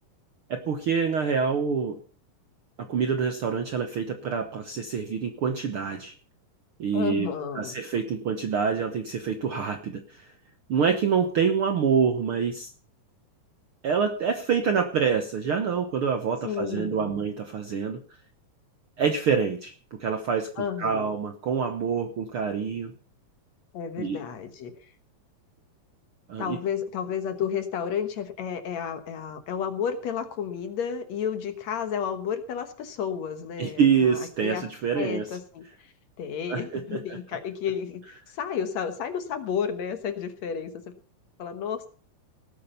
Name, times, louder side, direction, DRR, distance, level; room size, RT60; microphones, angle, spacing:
voice 1, 0.5-2.0 2.8-6.1 6.8-7.3 7.5-10.3 10.7-12.7 13.8-18.0 19.0-20.5 20.8-22.9 24.0-24.2 26.3-26.6 33.6-35.3 36.5-37.0, right 6 dB, 65° right, 7 dB, 1.4 m, -26 dB
voice 2, 6.9-7.8 16.4-17.2 20.6-21.1 23.7-24.7 26.4-34.6 34.9-35.9 36.2-40.7 41.4-41.9, left 7 dB, 60° left, 9 dB, 2.3 m, -32 dB
19.0 x 8.6 x 5.6 m, 0.40 s
omnidirectional pair, 3.8 m